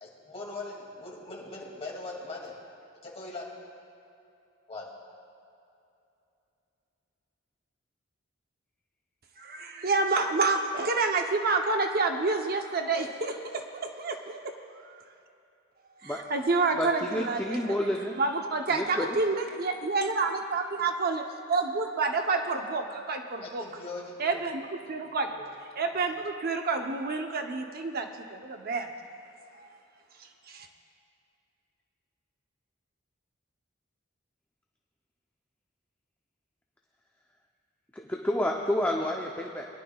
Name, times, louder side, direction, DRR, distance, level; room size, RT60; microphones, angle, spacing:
voice 1, 0.0-2.6 3.0-3.5 4.7-4.9 23.4-24.2 25.0-25.5, left 3 dB, 30° left, -3 dB, 2.3 m, -41 dB
voice 2, 9.4-13.6 14.0-14.4 14.8-15.0 16.0-17.9 18.2-21.2 21.5-23.6 24.2-25.3 25.8-28.9 29.6-29.7 30.2-30.7, right 3 dB, 50° right, 4 dB, 0.7 m, -29 dB
voice 3, 16.8-18.1 18.7-19.1 37.9-39.6, left 1 dB, 10° left, -1 dB, 0.6 m, -29 dB
22.0 x 11.0 x 2.3 m, 2.8 s
head